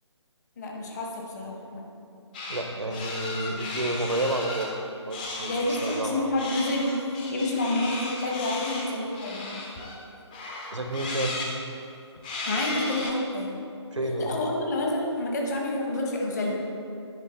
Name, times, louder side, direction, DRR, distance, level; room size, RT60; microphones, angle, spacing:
voice 1, 0.6-1.8 5.4-9.7 12.4-13.6 14.2-16.5, left 1 dB, 35° left, -1 dB, 1.3 m, -29 dB
sound 1, 2.3-2.6 2.9-4.7 5.1-6.0 6.4-10.0 10.3-11.5 12.2-13.1, left 2 dB, 15° left, 0.7 m, -35 dB
voice 2, 2.5-5.5 5.8-6.3 10.7-11.3 13.9-14.4, right 1 dB, 80° right, 4 dB, 0.9 m, -30 dB
9.7 x 5.0 x 4.1 m, 2.6 s
figure-of-eight pair, 145°, 15 cm